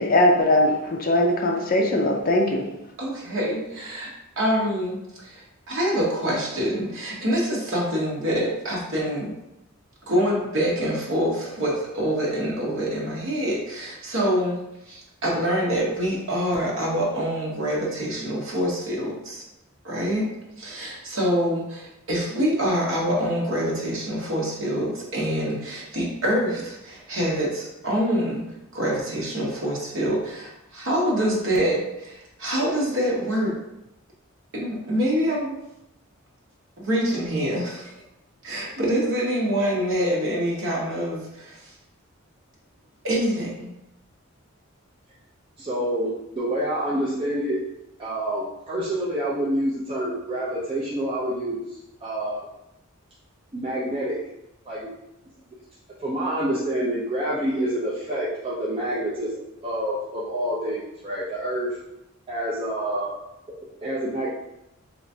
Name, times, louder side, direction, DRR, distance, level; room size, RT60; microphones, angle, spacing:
voice 1, 0.0-2.7, left 1 dB, 40° left, 1 dB, 0.5 m, -20 dB
voice 2, 3.0-4.1 4.4-5.0 5.2-9.4 10.1-19.4 19.8-20.3 20.6-28.4 28.7-33.6 34.5-35.6 36.8-37.9 38.4-41.7 43.0-43.7, equal, 60° right, -3 dB, 0.9 m, -25 dB
voice 3, 45.6-47.6 48.0-52.5 53.5-54.2 54.7-54.9 56.0-61.8 62.3-63.2 63.8-64.3, right 1 dB, 25° right, -7 dB, 0.4 m, -27 dB
3.3 x 2.9 x 2.6 m, 0.89 s
head